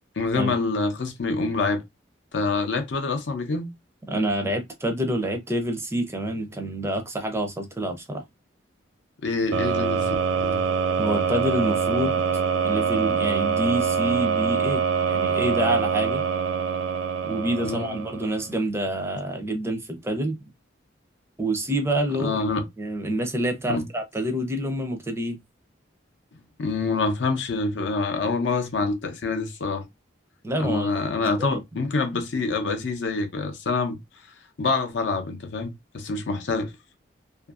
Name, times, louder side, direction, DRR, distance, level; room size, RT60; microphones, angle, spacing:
voice 1, 0.2-1.8 2.3-3.7 9.2-10.6 17.6-18.0 22.1-22.7 23.7-23.9 26.3-29.9 30.6-34.0 34.6-36.7, left 3 dB, 70° left, 0.6 m, -26 dB
voice 2, 4.1-8.2 11.0-12.2 12.6-16.2 17.2-20.4 21.4-22.4 22.8-25.4 30.4-31.6, right 1 dB, 15° right, 0.4 m, -27 dB
sound 1, 9.5-18.4, right 6 dB, 80° right, 0.3 m, -24 dB
2.6 x 2.5 x 2.3 m
head